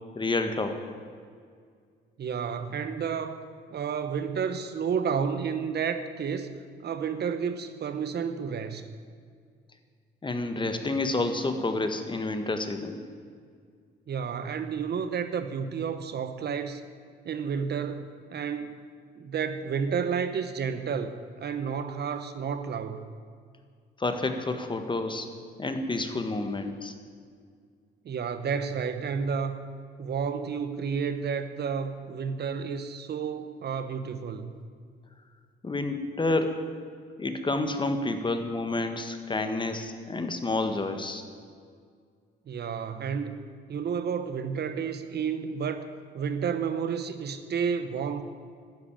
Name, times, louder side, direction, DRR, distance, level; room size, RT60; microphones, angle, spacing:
voice 1, 0.1-0.8 10.2-13.0 24.0-25.3 25.6-26.9 35.6-36.6 37.2-41.2, left 2 dB, 25° left, 7 dB, 1.5 m, -29 dB
voice 2, 2.2-3.4 3.7-8.9 14.1-16.8 17.2-18.8 19.2-23.0 28.0-29.6 30.0-34.5 42.5-43.4 43.7-45.9 46.1-48.2, right 6 dB, 55° right, 10 dB, 1.1 m, -31 dB
12.0 x 10.5 x 8.9 m, 2.1 s
cardioid pair, 90°, 20 cm